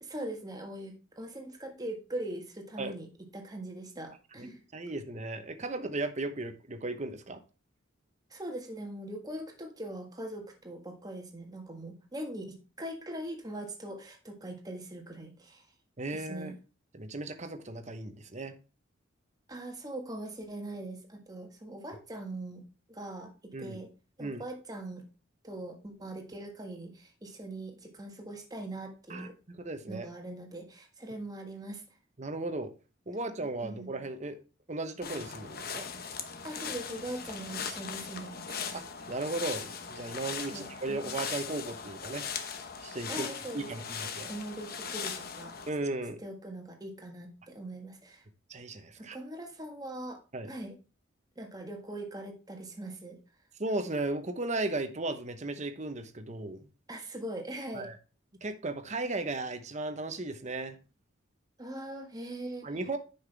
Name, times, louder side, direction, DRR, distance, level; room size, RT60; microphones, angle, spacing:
voice 1, 0.0-4.6 8.3-15.6 16.1-16.6 19.5-22.6 22.9-23.3 23.6-23.9 24.2-25.0 25.4-29.4 29.9-31.8 33.6-33.9 36.4-38.5 40.5-41.0 43.1-43.7 44.3-45.6 46.2-48.2 49.0-50.7 51.3-53.2 56.9-57.9 61.6-62.7, right 1 dB, 20° right, 1.5 m, -41 dB
voice 2, 4.7-7.4 16.0-16.5 16.9-18.5 23.5-23.8 24.2-24.4 29.1-30.1 32.2-32.7 33.1-34.4 34.7-35.9 38.7-42.2 42.8-43.3 43.5-44.3 45.7-46.2 48.5-49.2 50.3-50.5 53.6-56.6 57.7-58.0 58.4-60.8 62.6-63.0, right 2 dB, 35° right, 0.9 m, -36 dB
sound 1, 35.0-45.7, left 6 dB, 50° left, 1.0 m, -39 dB
9.6 x 5.7 x 3.4 m
head